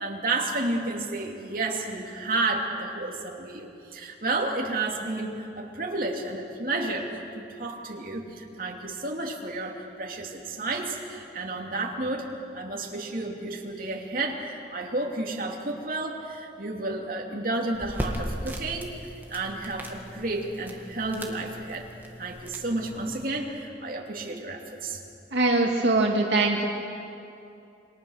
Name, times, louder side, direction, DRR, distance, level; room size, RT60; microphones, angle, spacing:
voice 1, 0.0-21.9 22.2-25.0, right 2 dB, 50° right, -1 dB, 2.9 m, -31 dB
sound 1, 17.7-23.2, equal, 10° right, 2.1 m, -38 dB
voice 2, 25.3-26.7, right 2 dB, 80° right, 0 dB, 2.1 m, -22 dB
28.5 x 23.0 x 6.6 m, 2.7 s
head